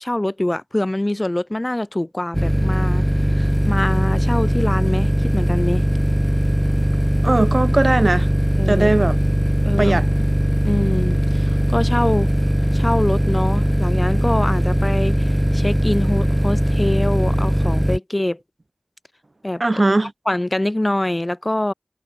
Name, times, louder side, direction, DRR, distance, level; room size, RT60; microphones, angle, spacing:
voice 1, 0.0-3.0 3.3-5.8 8.6-8.9 9.6-10.0 10.7-12.3 12.7-18.4 19.4-19.9 20.3-21.7, left 1 dB, 25° left, 0.3 m, -24 dB
sound 1, 2.3-18.0, equal, 5° right, 0.8 m, -19 dB
voice 2, 7.2-8.3 8.7-9.2 9.8-10.0 19.6-20.1, right 2 dB, 50° right, 0.9 m, -18 dB
wide cardioid pair, 60°, 0 cm